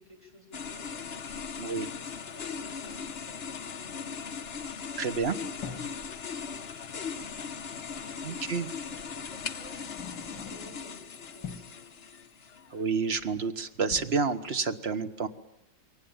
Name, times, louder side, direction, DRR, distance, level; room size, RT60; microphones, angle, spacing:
voice 1, 0.0-8.5 8.8-11.9, left 1 dB, 15° left, -1 dB, 6.7 m, -54 dB
sound 1, 0.5-12.8, left 6 dB, 40° left, 1.1 m, -39 dB
sound 2, 5.0-6.1 7.7-7.8 8.9-9.1 9.7-10.9 11.3-11.8 13.1-13.5 13.8-14.0, left 6 dB, 75° left, 2.7 m, -44 dB
voice 2, 5.0-5.4 8.2-8.7 12.7-15.3, right 5 dB, 40° right, 9 dB, 1.2 m, -29 dB
22.0 x 18.5 x 8.9 m, 0.88 s
omnidirectional pair, 2.0 m